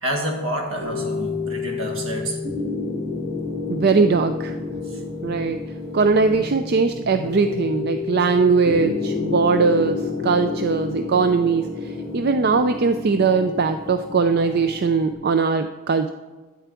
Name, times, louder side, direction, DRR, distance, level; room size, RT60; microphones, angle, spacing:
voice 1, 0.0-2.5 4.8-5.0, right 1 dB, 70° right, 1.9 m, -28 dB
sound 1, 0.8-15.1, left 4 dB, 90° right, 3.0 m, -30 dB
voice 2, 3.7-4.5 5.2-5.6 5.9-16.1, right 4 dB, 50° right, 0.4 m, -20 dB
12.0 x 4.7 x 8.2 m
head